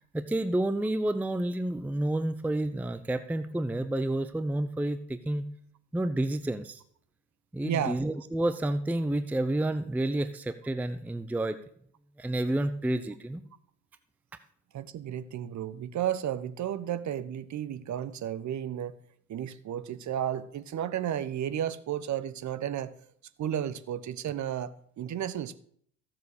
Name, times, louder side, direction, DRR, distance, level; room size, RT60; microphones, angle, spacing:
voice 1, 0.1-5.4 5.9-6.8 7.5-11.6 12.2-13.4, right 1 dB, 5° right, 11 dB, 0.7 m, -30 dB
voice 2, 7.6-8.0 14.7-18.9 19.3-23.0 23.4-25.6, right 10 dB, 35° right, 15 dB, 1.1 m, -33 dB
15.0 x 7.3 x 6.6 m, 0.62 s
hypercardioid pair, 75°, 48 cm